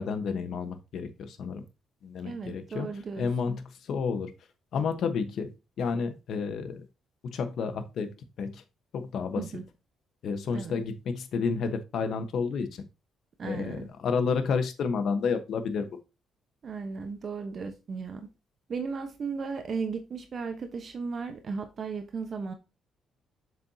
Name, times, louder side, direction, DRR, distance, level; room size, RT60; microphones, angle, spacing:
voice 1, 0.0-1.6 2.0-2.9 3.2-4.3 4.7-5.5 5.8-6.8 7.2-8.6 8.9-9.4 10.2-12.8 13.4-15.9, left 5 dB, 70° left, 1.2 m, -30 dB
voice 2, 2.2-3.6 9.4-9.6 10.5-10.7 13.4-13.9 16.6-18.3 18.7-22.5, right 5 dB, 50° right, 1.1 m, -35 dB
7.4 x 6.1 x 2.8 m
cardioid pair, 90°, 0 cm